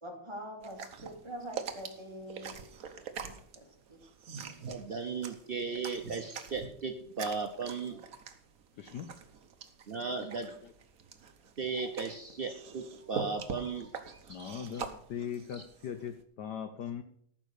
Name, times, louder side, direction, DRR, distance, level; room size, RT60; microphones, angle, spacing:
voice 1, 0.0-2.5 3.2-4.0, equal, 15° right, 2.3 m, -44 dB
sound 1, 0.6-16.2, right 6 dB, 50° right, 1.2 m, -44 dB
voice 2, 4.3-8.0 9.9-10.5 11.6-14.9 15.5-15.6, right 4 dB, 80° right, 0.5 m, -37 dB
voice 3, 8.8-9.1 10.2-10.3 14.3-17.0, left 8 dB, 65° left, 1.1 m, -40 dB
14.0 x 6.2 x 6.5 m
omnidirectional pair, 2.3 m